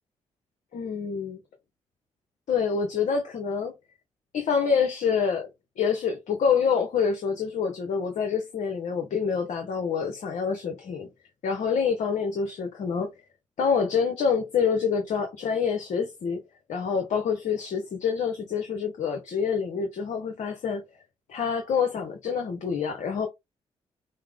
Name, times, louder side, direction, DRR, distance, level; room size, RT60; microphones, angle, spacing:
voice 1, 0.7-1.4 2.5-3.7 4.3-5.5 5.8-11.1 11.4-13.1 13.6-16.4 16.7-20.8 21.3-23.3, left 6 dB, 70° left, 1.0 m, -26 dB
5.5 x 2.1 x 3.4 m
supercardioid pair, 55°, 13 cm